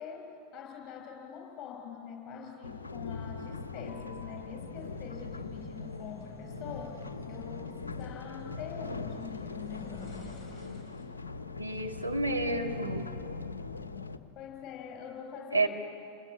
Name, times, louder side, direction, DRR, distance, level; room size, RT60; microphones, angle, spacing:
voice 1, 0.0-10.0 14.3-15.7, left 7 dB, 35° left, 2 dB, 6.1 m, -44 dB
Machine Steampunk Factory, 2.6-14.2, left 4 dB, 75° left, 1.1 m, -41 dB
sound 1, 3.7-11.2, left 2 dB, ahead, 6.2 m, -49 dB
voice 2, 11.6-13.1 15.5-15.7, right 2 dB, 85° right, 1 dB, 2.2 m, -30 dB
28.5 x 20.5 x 9.8 m, 2.5 s
figure-of-eight pair, 90°, 0 cm